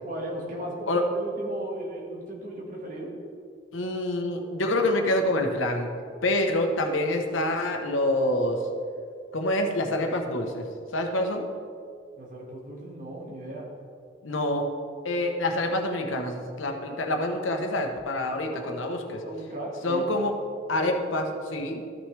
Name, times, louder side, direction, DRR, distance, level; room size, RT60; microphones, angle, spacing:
voice 1, 0.0-3.1 4.6-4.9 12.2-13.7 18.5-18.8 19.1-20.1, right 1 dB, 45° right, -2 dB, 1.7 m, -36 dB
voice 2, 3.7-5.9 6.2-8.7 9.3-10.7 10.9-11.5 14.2-14.7 15.0-19.2 19.8-20.4 20.7-21.8, left 1 dB, 90° left, 4 dB, 1.0 m, -26 dB
13.0 x 6.2 x 3.3 m, 2.3 s
head